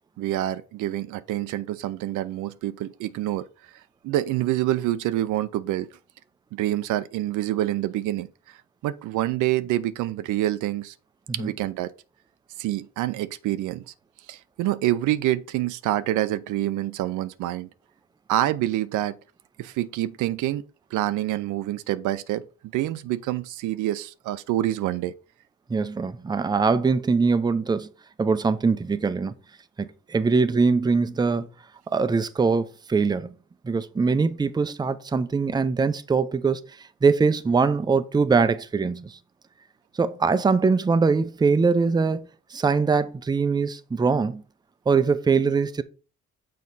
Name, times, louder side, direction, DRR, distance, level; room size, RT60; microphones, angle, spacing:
voice 1, 0.2-3.5 4.0-5.9 6.5-8.3 8.8-10.9 11.3-11.9 12.6-13.9 14.3-17.7 18.3-19.2 19.6-20.6 20.9-22.4 22.7-25.1, right 14 dB, 85° right, 0.5 m, -26 dB
voice 2, 25.7-27.9 28.2-29.3 29.8-31.5 31.9-33.3 33.6-36.6 37.0-39.2 40.0-44.4 44.9-45.8, right 4 dB, 15° right, 0.4 m, -22 dB
6.5 x 4.2 x 4.0 m
cardioid pair, 90°, 30 cm